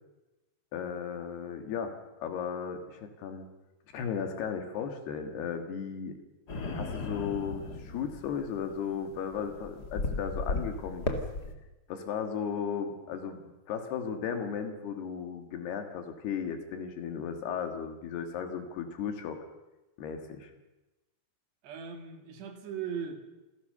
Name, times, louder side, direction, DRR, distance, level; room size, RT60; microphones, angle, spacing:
voice 1, 0.7-1.9 2.2-3.5 3.9-6.2 6.7-11.2 11.9-13.4 13.7-19.4 20.0-20.5, left 7 dB, 70° left, 6 dB, 3.8 m, -35 dB
sound 1, 6.5-11.5, left 2 dB, 45° left, 1.3 m, -35 dB
voice 2, 21.6-23.2, right 7 dB, 75° right, 5 dB, 4.3 m, -38 dB
28.0 x 16.0 x 6.8 m, 1.0 s
omnidirectional pair, 5.1 m